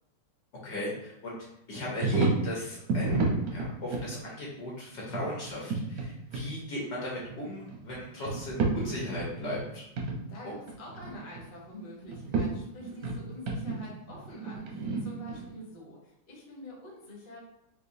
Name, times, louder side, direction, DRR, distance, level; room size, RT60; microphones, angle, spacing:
voice 1, 0.6-1.3 1.7-9.8 10.4-10.5, left 1 dB, 60° left, -5 dB, 1.2 m, -37 dB
sound 1, 2.0-2.5 2.9-4.1 5.1-6.1 6.3-6.5 7.2-8.0 8.3-9.7 10.0-10.2 10.5-11.5 12.0-12.4 12.8-15.5, right 3 dB, 70° right, 0.9 m, -31 dB
voice 2, 10.3-17.4, equal, 45° left, -5 dB, 0.6 m, -46 dB
4.8 x 2.1 x 2.6 m, 0.81 s
omnidirectional pair, 2.4 m